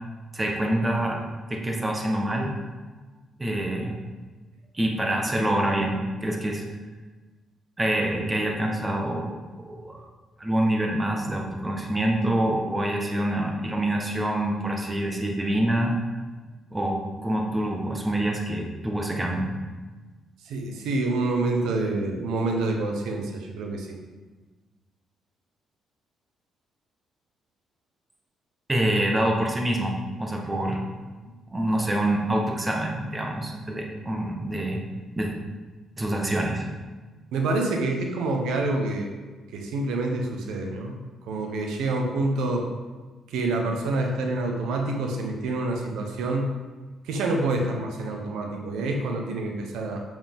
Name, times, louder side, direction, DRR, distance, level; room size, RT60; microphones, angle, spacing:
voice 1, 0.3-1.2 1.5-2.5 3.4-4.0 4.7-6.6 7.8-10.1 10.4-16.0 16.7-19.5 28.7-30.8 31.5-34.8 35.2-35.3 36.0-36.7, right 1 dB, 20° right, 0 dB, 1.5 m, -26 dB
voice 2, 20.4-24.0 37.3-39.1 39.5-41.0 41.3-42.7 43.3-46.5 47.0-50.0, right 2 dB, 85° right, 2 dB, 1.2 m, -27 dB
7.8 x 7.6 x 3.8 m, 1.3 s
cardioid pair, 90°, 0 cm